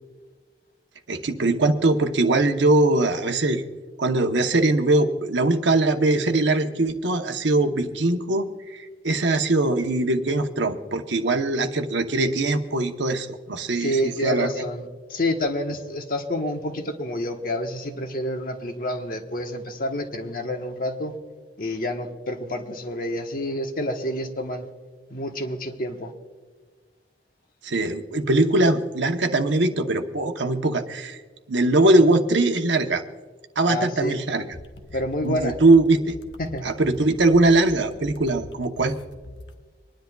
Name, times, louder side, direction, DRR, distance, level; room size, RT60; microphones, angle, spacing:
voice 1, 1.1-3.6 4.0-14.6 27.6-31.2 31.5-33.0 33.6-34.5 35.2-36.1 36.6-39.0, right 2 dB, 90° right, 6 dB, 1.0 m, -21 dB
voice 2, 13.8-21.1 21.6-24.7 25.1-26.1 33.7-34.2 34.9-35.5 36.4-36.7, left 1 dB, 50° left, 4 dB, 1.2 m, -28 dB
sound 1, 34.5-39.5, left 1 dB, 85° left, 1.1 m, -44 dB
26.0 x 10.5 x 2.3 m, 1.4 s
head